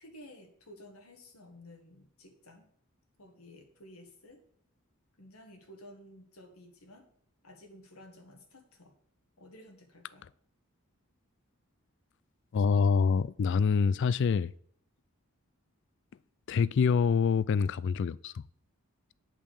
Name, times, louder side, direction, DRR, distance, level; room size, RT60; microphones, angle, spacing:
voice 1, 0.0-2.7 3.2-4.4 5.2-7.1 7.4-9.0 9.4-10.2, left 1 dB, 85° left, 1.8 m, -53 dB
voice 2, 12.5-14.5 16.5-18.4, left 5 dB, 55° left, 0.3 m, -26 dB
8.4 x 5.4 x 7.2 m
head